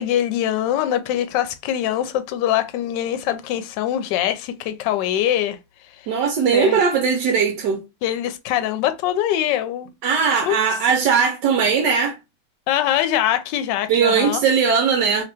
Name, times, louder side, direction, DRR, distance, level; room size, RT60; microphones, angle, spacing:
voice 1, 0.0-5.6 6.0-6.1 6.5-6.8 8.0-9.9 10.4-10.6 12.7-14.4, left 11 dB, 75° left, 1.1 m, -23 dB
voice 2, 6.1-7.8 10.0-12.2 13.9-15.2, right 6 dB, 70° right, 1.2 m, -19 dB
2.9 x 2.9 x 3.3 m
omnidirectional pair, 2.1 m